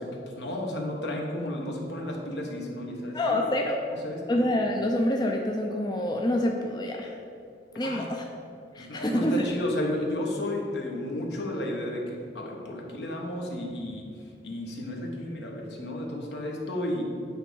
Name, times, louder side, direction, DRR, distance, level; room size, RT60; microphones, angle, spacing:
voice 1, 0.0-3.4 3.8-4.4 7.7-8.0 8.8-14.1 14.4-17.0, left 1 dB, 70° left, -1 dB, 1.3 m, -33 dB
voice 2, 3.1-3.8 4.3-7.1 7.8-8.2 8.7-9.4, left 1 dB, 25° left, 1 dB, 0.5 m, -26 dB
8.8 x 3.5 x 6.2 m, 2.5 s
head